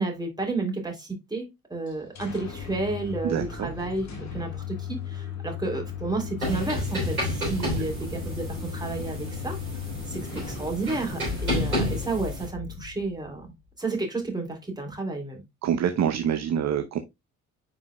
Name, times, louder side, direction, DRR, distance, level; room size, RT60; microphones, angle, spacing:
voice 1, 0.0-9.6 10.1-13.5 13.8-15.4, right 3 dB, 10° right, 3.0 m, -31 dB
sound 1, 1.9-13.5, left 5 dB, 40° left, 1.9 m, -36 dB
voice 2, 3.2-3.7 7.6-7.7 15.6-17.0, right 9 dB, 40° right, 0.9 m, -26 dB
sound 2, 6.4-12.5, equal, 90° right, 3.2 m, -31 dB
9.7 x 4.9 x 2.2 m
figure-of-eight pair, 45°, 41 cm